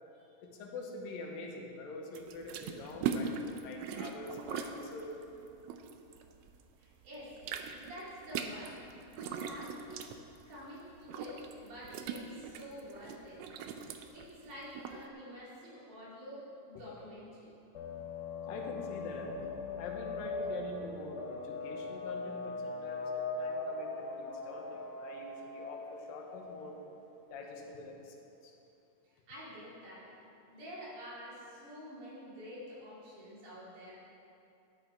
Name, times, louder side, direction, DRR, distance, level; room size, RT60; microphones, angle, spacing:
voice 1, 0.4-3.3 3.6-5.2 18.5-26.8 27.3-28.5, left 3 dB, 90° left, 1 dB, 2.9 m, -45 dB
sound 1, 2.1-6.7 7.0-15.0, right 6 dB, 80° right, 1.6 m, -40 dB
voice 2, 6.8-7.3 7.7-8.8 9.1-9.9 10.5-13.4 14.1-17.5 21.7-21.8 29.3-30.1 30.5-33.9, equal, 65° right, -8 dB, 4.4 m, -48 dB
sound 2, 17.7-27.0, left 3 dB, 65° left, 1.9 m, -40 dB
12.5 x 9.3 x 4.5 m, 2.7 s
omnidirectional pair, 3.9 m